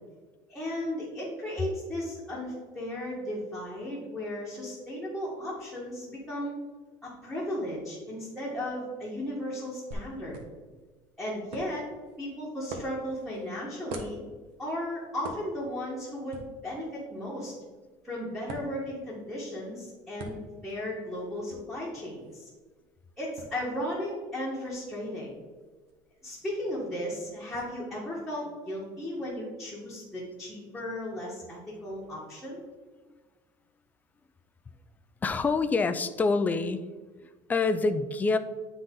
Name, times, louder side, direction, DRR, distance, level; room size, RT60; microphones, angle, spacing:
voice 1, 0.5-6.5 7.0-10.4 11.2-11.8 12.2-14.2 14.6-17.5 18.0-22.5 23.2-25.3 26.2-32.6, left 1 dB, ahead, -8 dB, 1.5 m, -35 dB
sound 1, 9.9-27.6, right 2 dB, 70° right, 1.1 m, -47 dB
voice 2, 35.2-36.9 37.5-38.4, left 4 dB, 15° left, 10 dB, 0.3 m, -26 dB
9.6 x 4.0 x 3.8 m, 1.4 s
cardioid pair, 150°, 11 cm